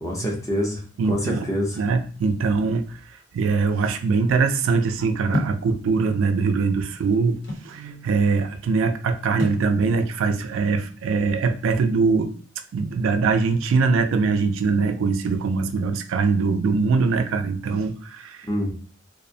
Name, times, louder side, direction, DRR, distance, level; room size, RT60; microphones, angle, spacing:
voice 1, 0.0-1.8 18.5-18.7, equal, 15° left, -2 dB, 0.5 m, -25 dB
voice 2, 1.0-1.5 1.8-3.0 3.3-12.3 12.7-18.5, right 4 dB, 75° right, 7 dB, 0.3 m, -22 dB
sound 1, 5.3-5.7 6.5-7.7 9.4-9.7, left 1 dB, 60° left, 0.8 m, -28 dB
2.5 x 2.0 x 2.6 m, 0.43 s
head